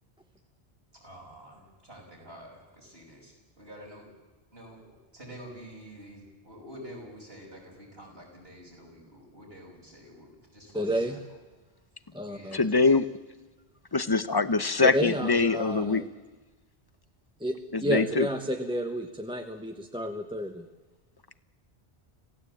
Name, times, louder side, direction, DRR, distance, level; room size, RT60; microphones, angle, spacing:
voice 1, 1.0-4.1 4.5-11.2 12.3-12.9, equal, 65° right, -2 dB, 7.5 m, -48 dB
voice 2, 10.7-11.2 12.1-12.6 14.8-16.1 17.4-20.7, equal, 5° right, 4 dB, 1.3 m, -31 dB
voice 3, 12.5-13.1 13.9-16.0 17.7-18.3, left 4 dB, 25° left, 14 dB, 0.9 m, -23 dB
26.5 x 17.0 x 8.7 m, 1.2 s
omnidirectional pair, 1.1 m